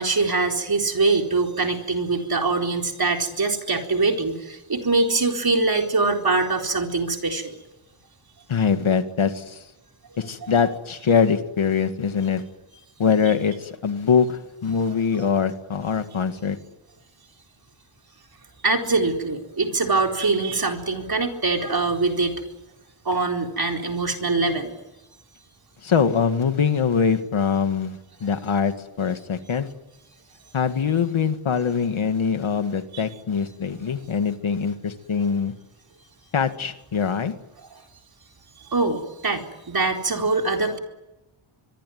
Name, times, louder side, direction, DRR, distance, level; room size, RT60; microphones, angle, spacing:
voice 1, 0.0-7.5 10.4-10.5 14.7-14.8 18.6-22.4 23.0-24.7 32.9-33.0 38.7-40.8, right 3 dB, 45° right, 2 dB, 4.3 m, -23 dB
voice 2, 8.5-9.6 10.2-12.4 13.0-16.6 25.8-29.7 30.5-35.5 36.3-37.3, left 6 dB, 70° left, 8 dB, 2.1 m, -23 dB
24.5 x 23.5 x 9.5 m, 0.98 s
wide cardioid pair, 125°, 49 cm